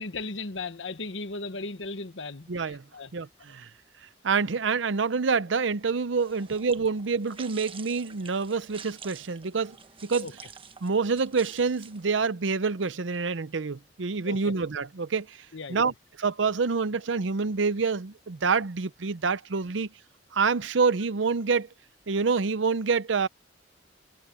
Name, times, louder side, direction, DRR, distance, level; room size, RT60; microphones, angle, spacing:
voice 1, 0.0-3.1 10.2-10.3 14.2-14.5 15.5-15.8, left 3 dB, 75° left, 1.3 m, -36 dB
voice 2, 2.5-2.8 3.1-3.7 4.2-9.8 10.0-10.3 10.8-19.9 20.3-21.7 22.1-23.3, right 5 dB, 80° right, 0.7 m, -27 dB
sound 1, 6.1-12.3, right 6 dB, 30° right, 1.2 m, -48 dB
head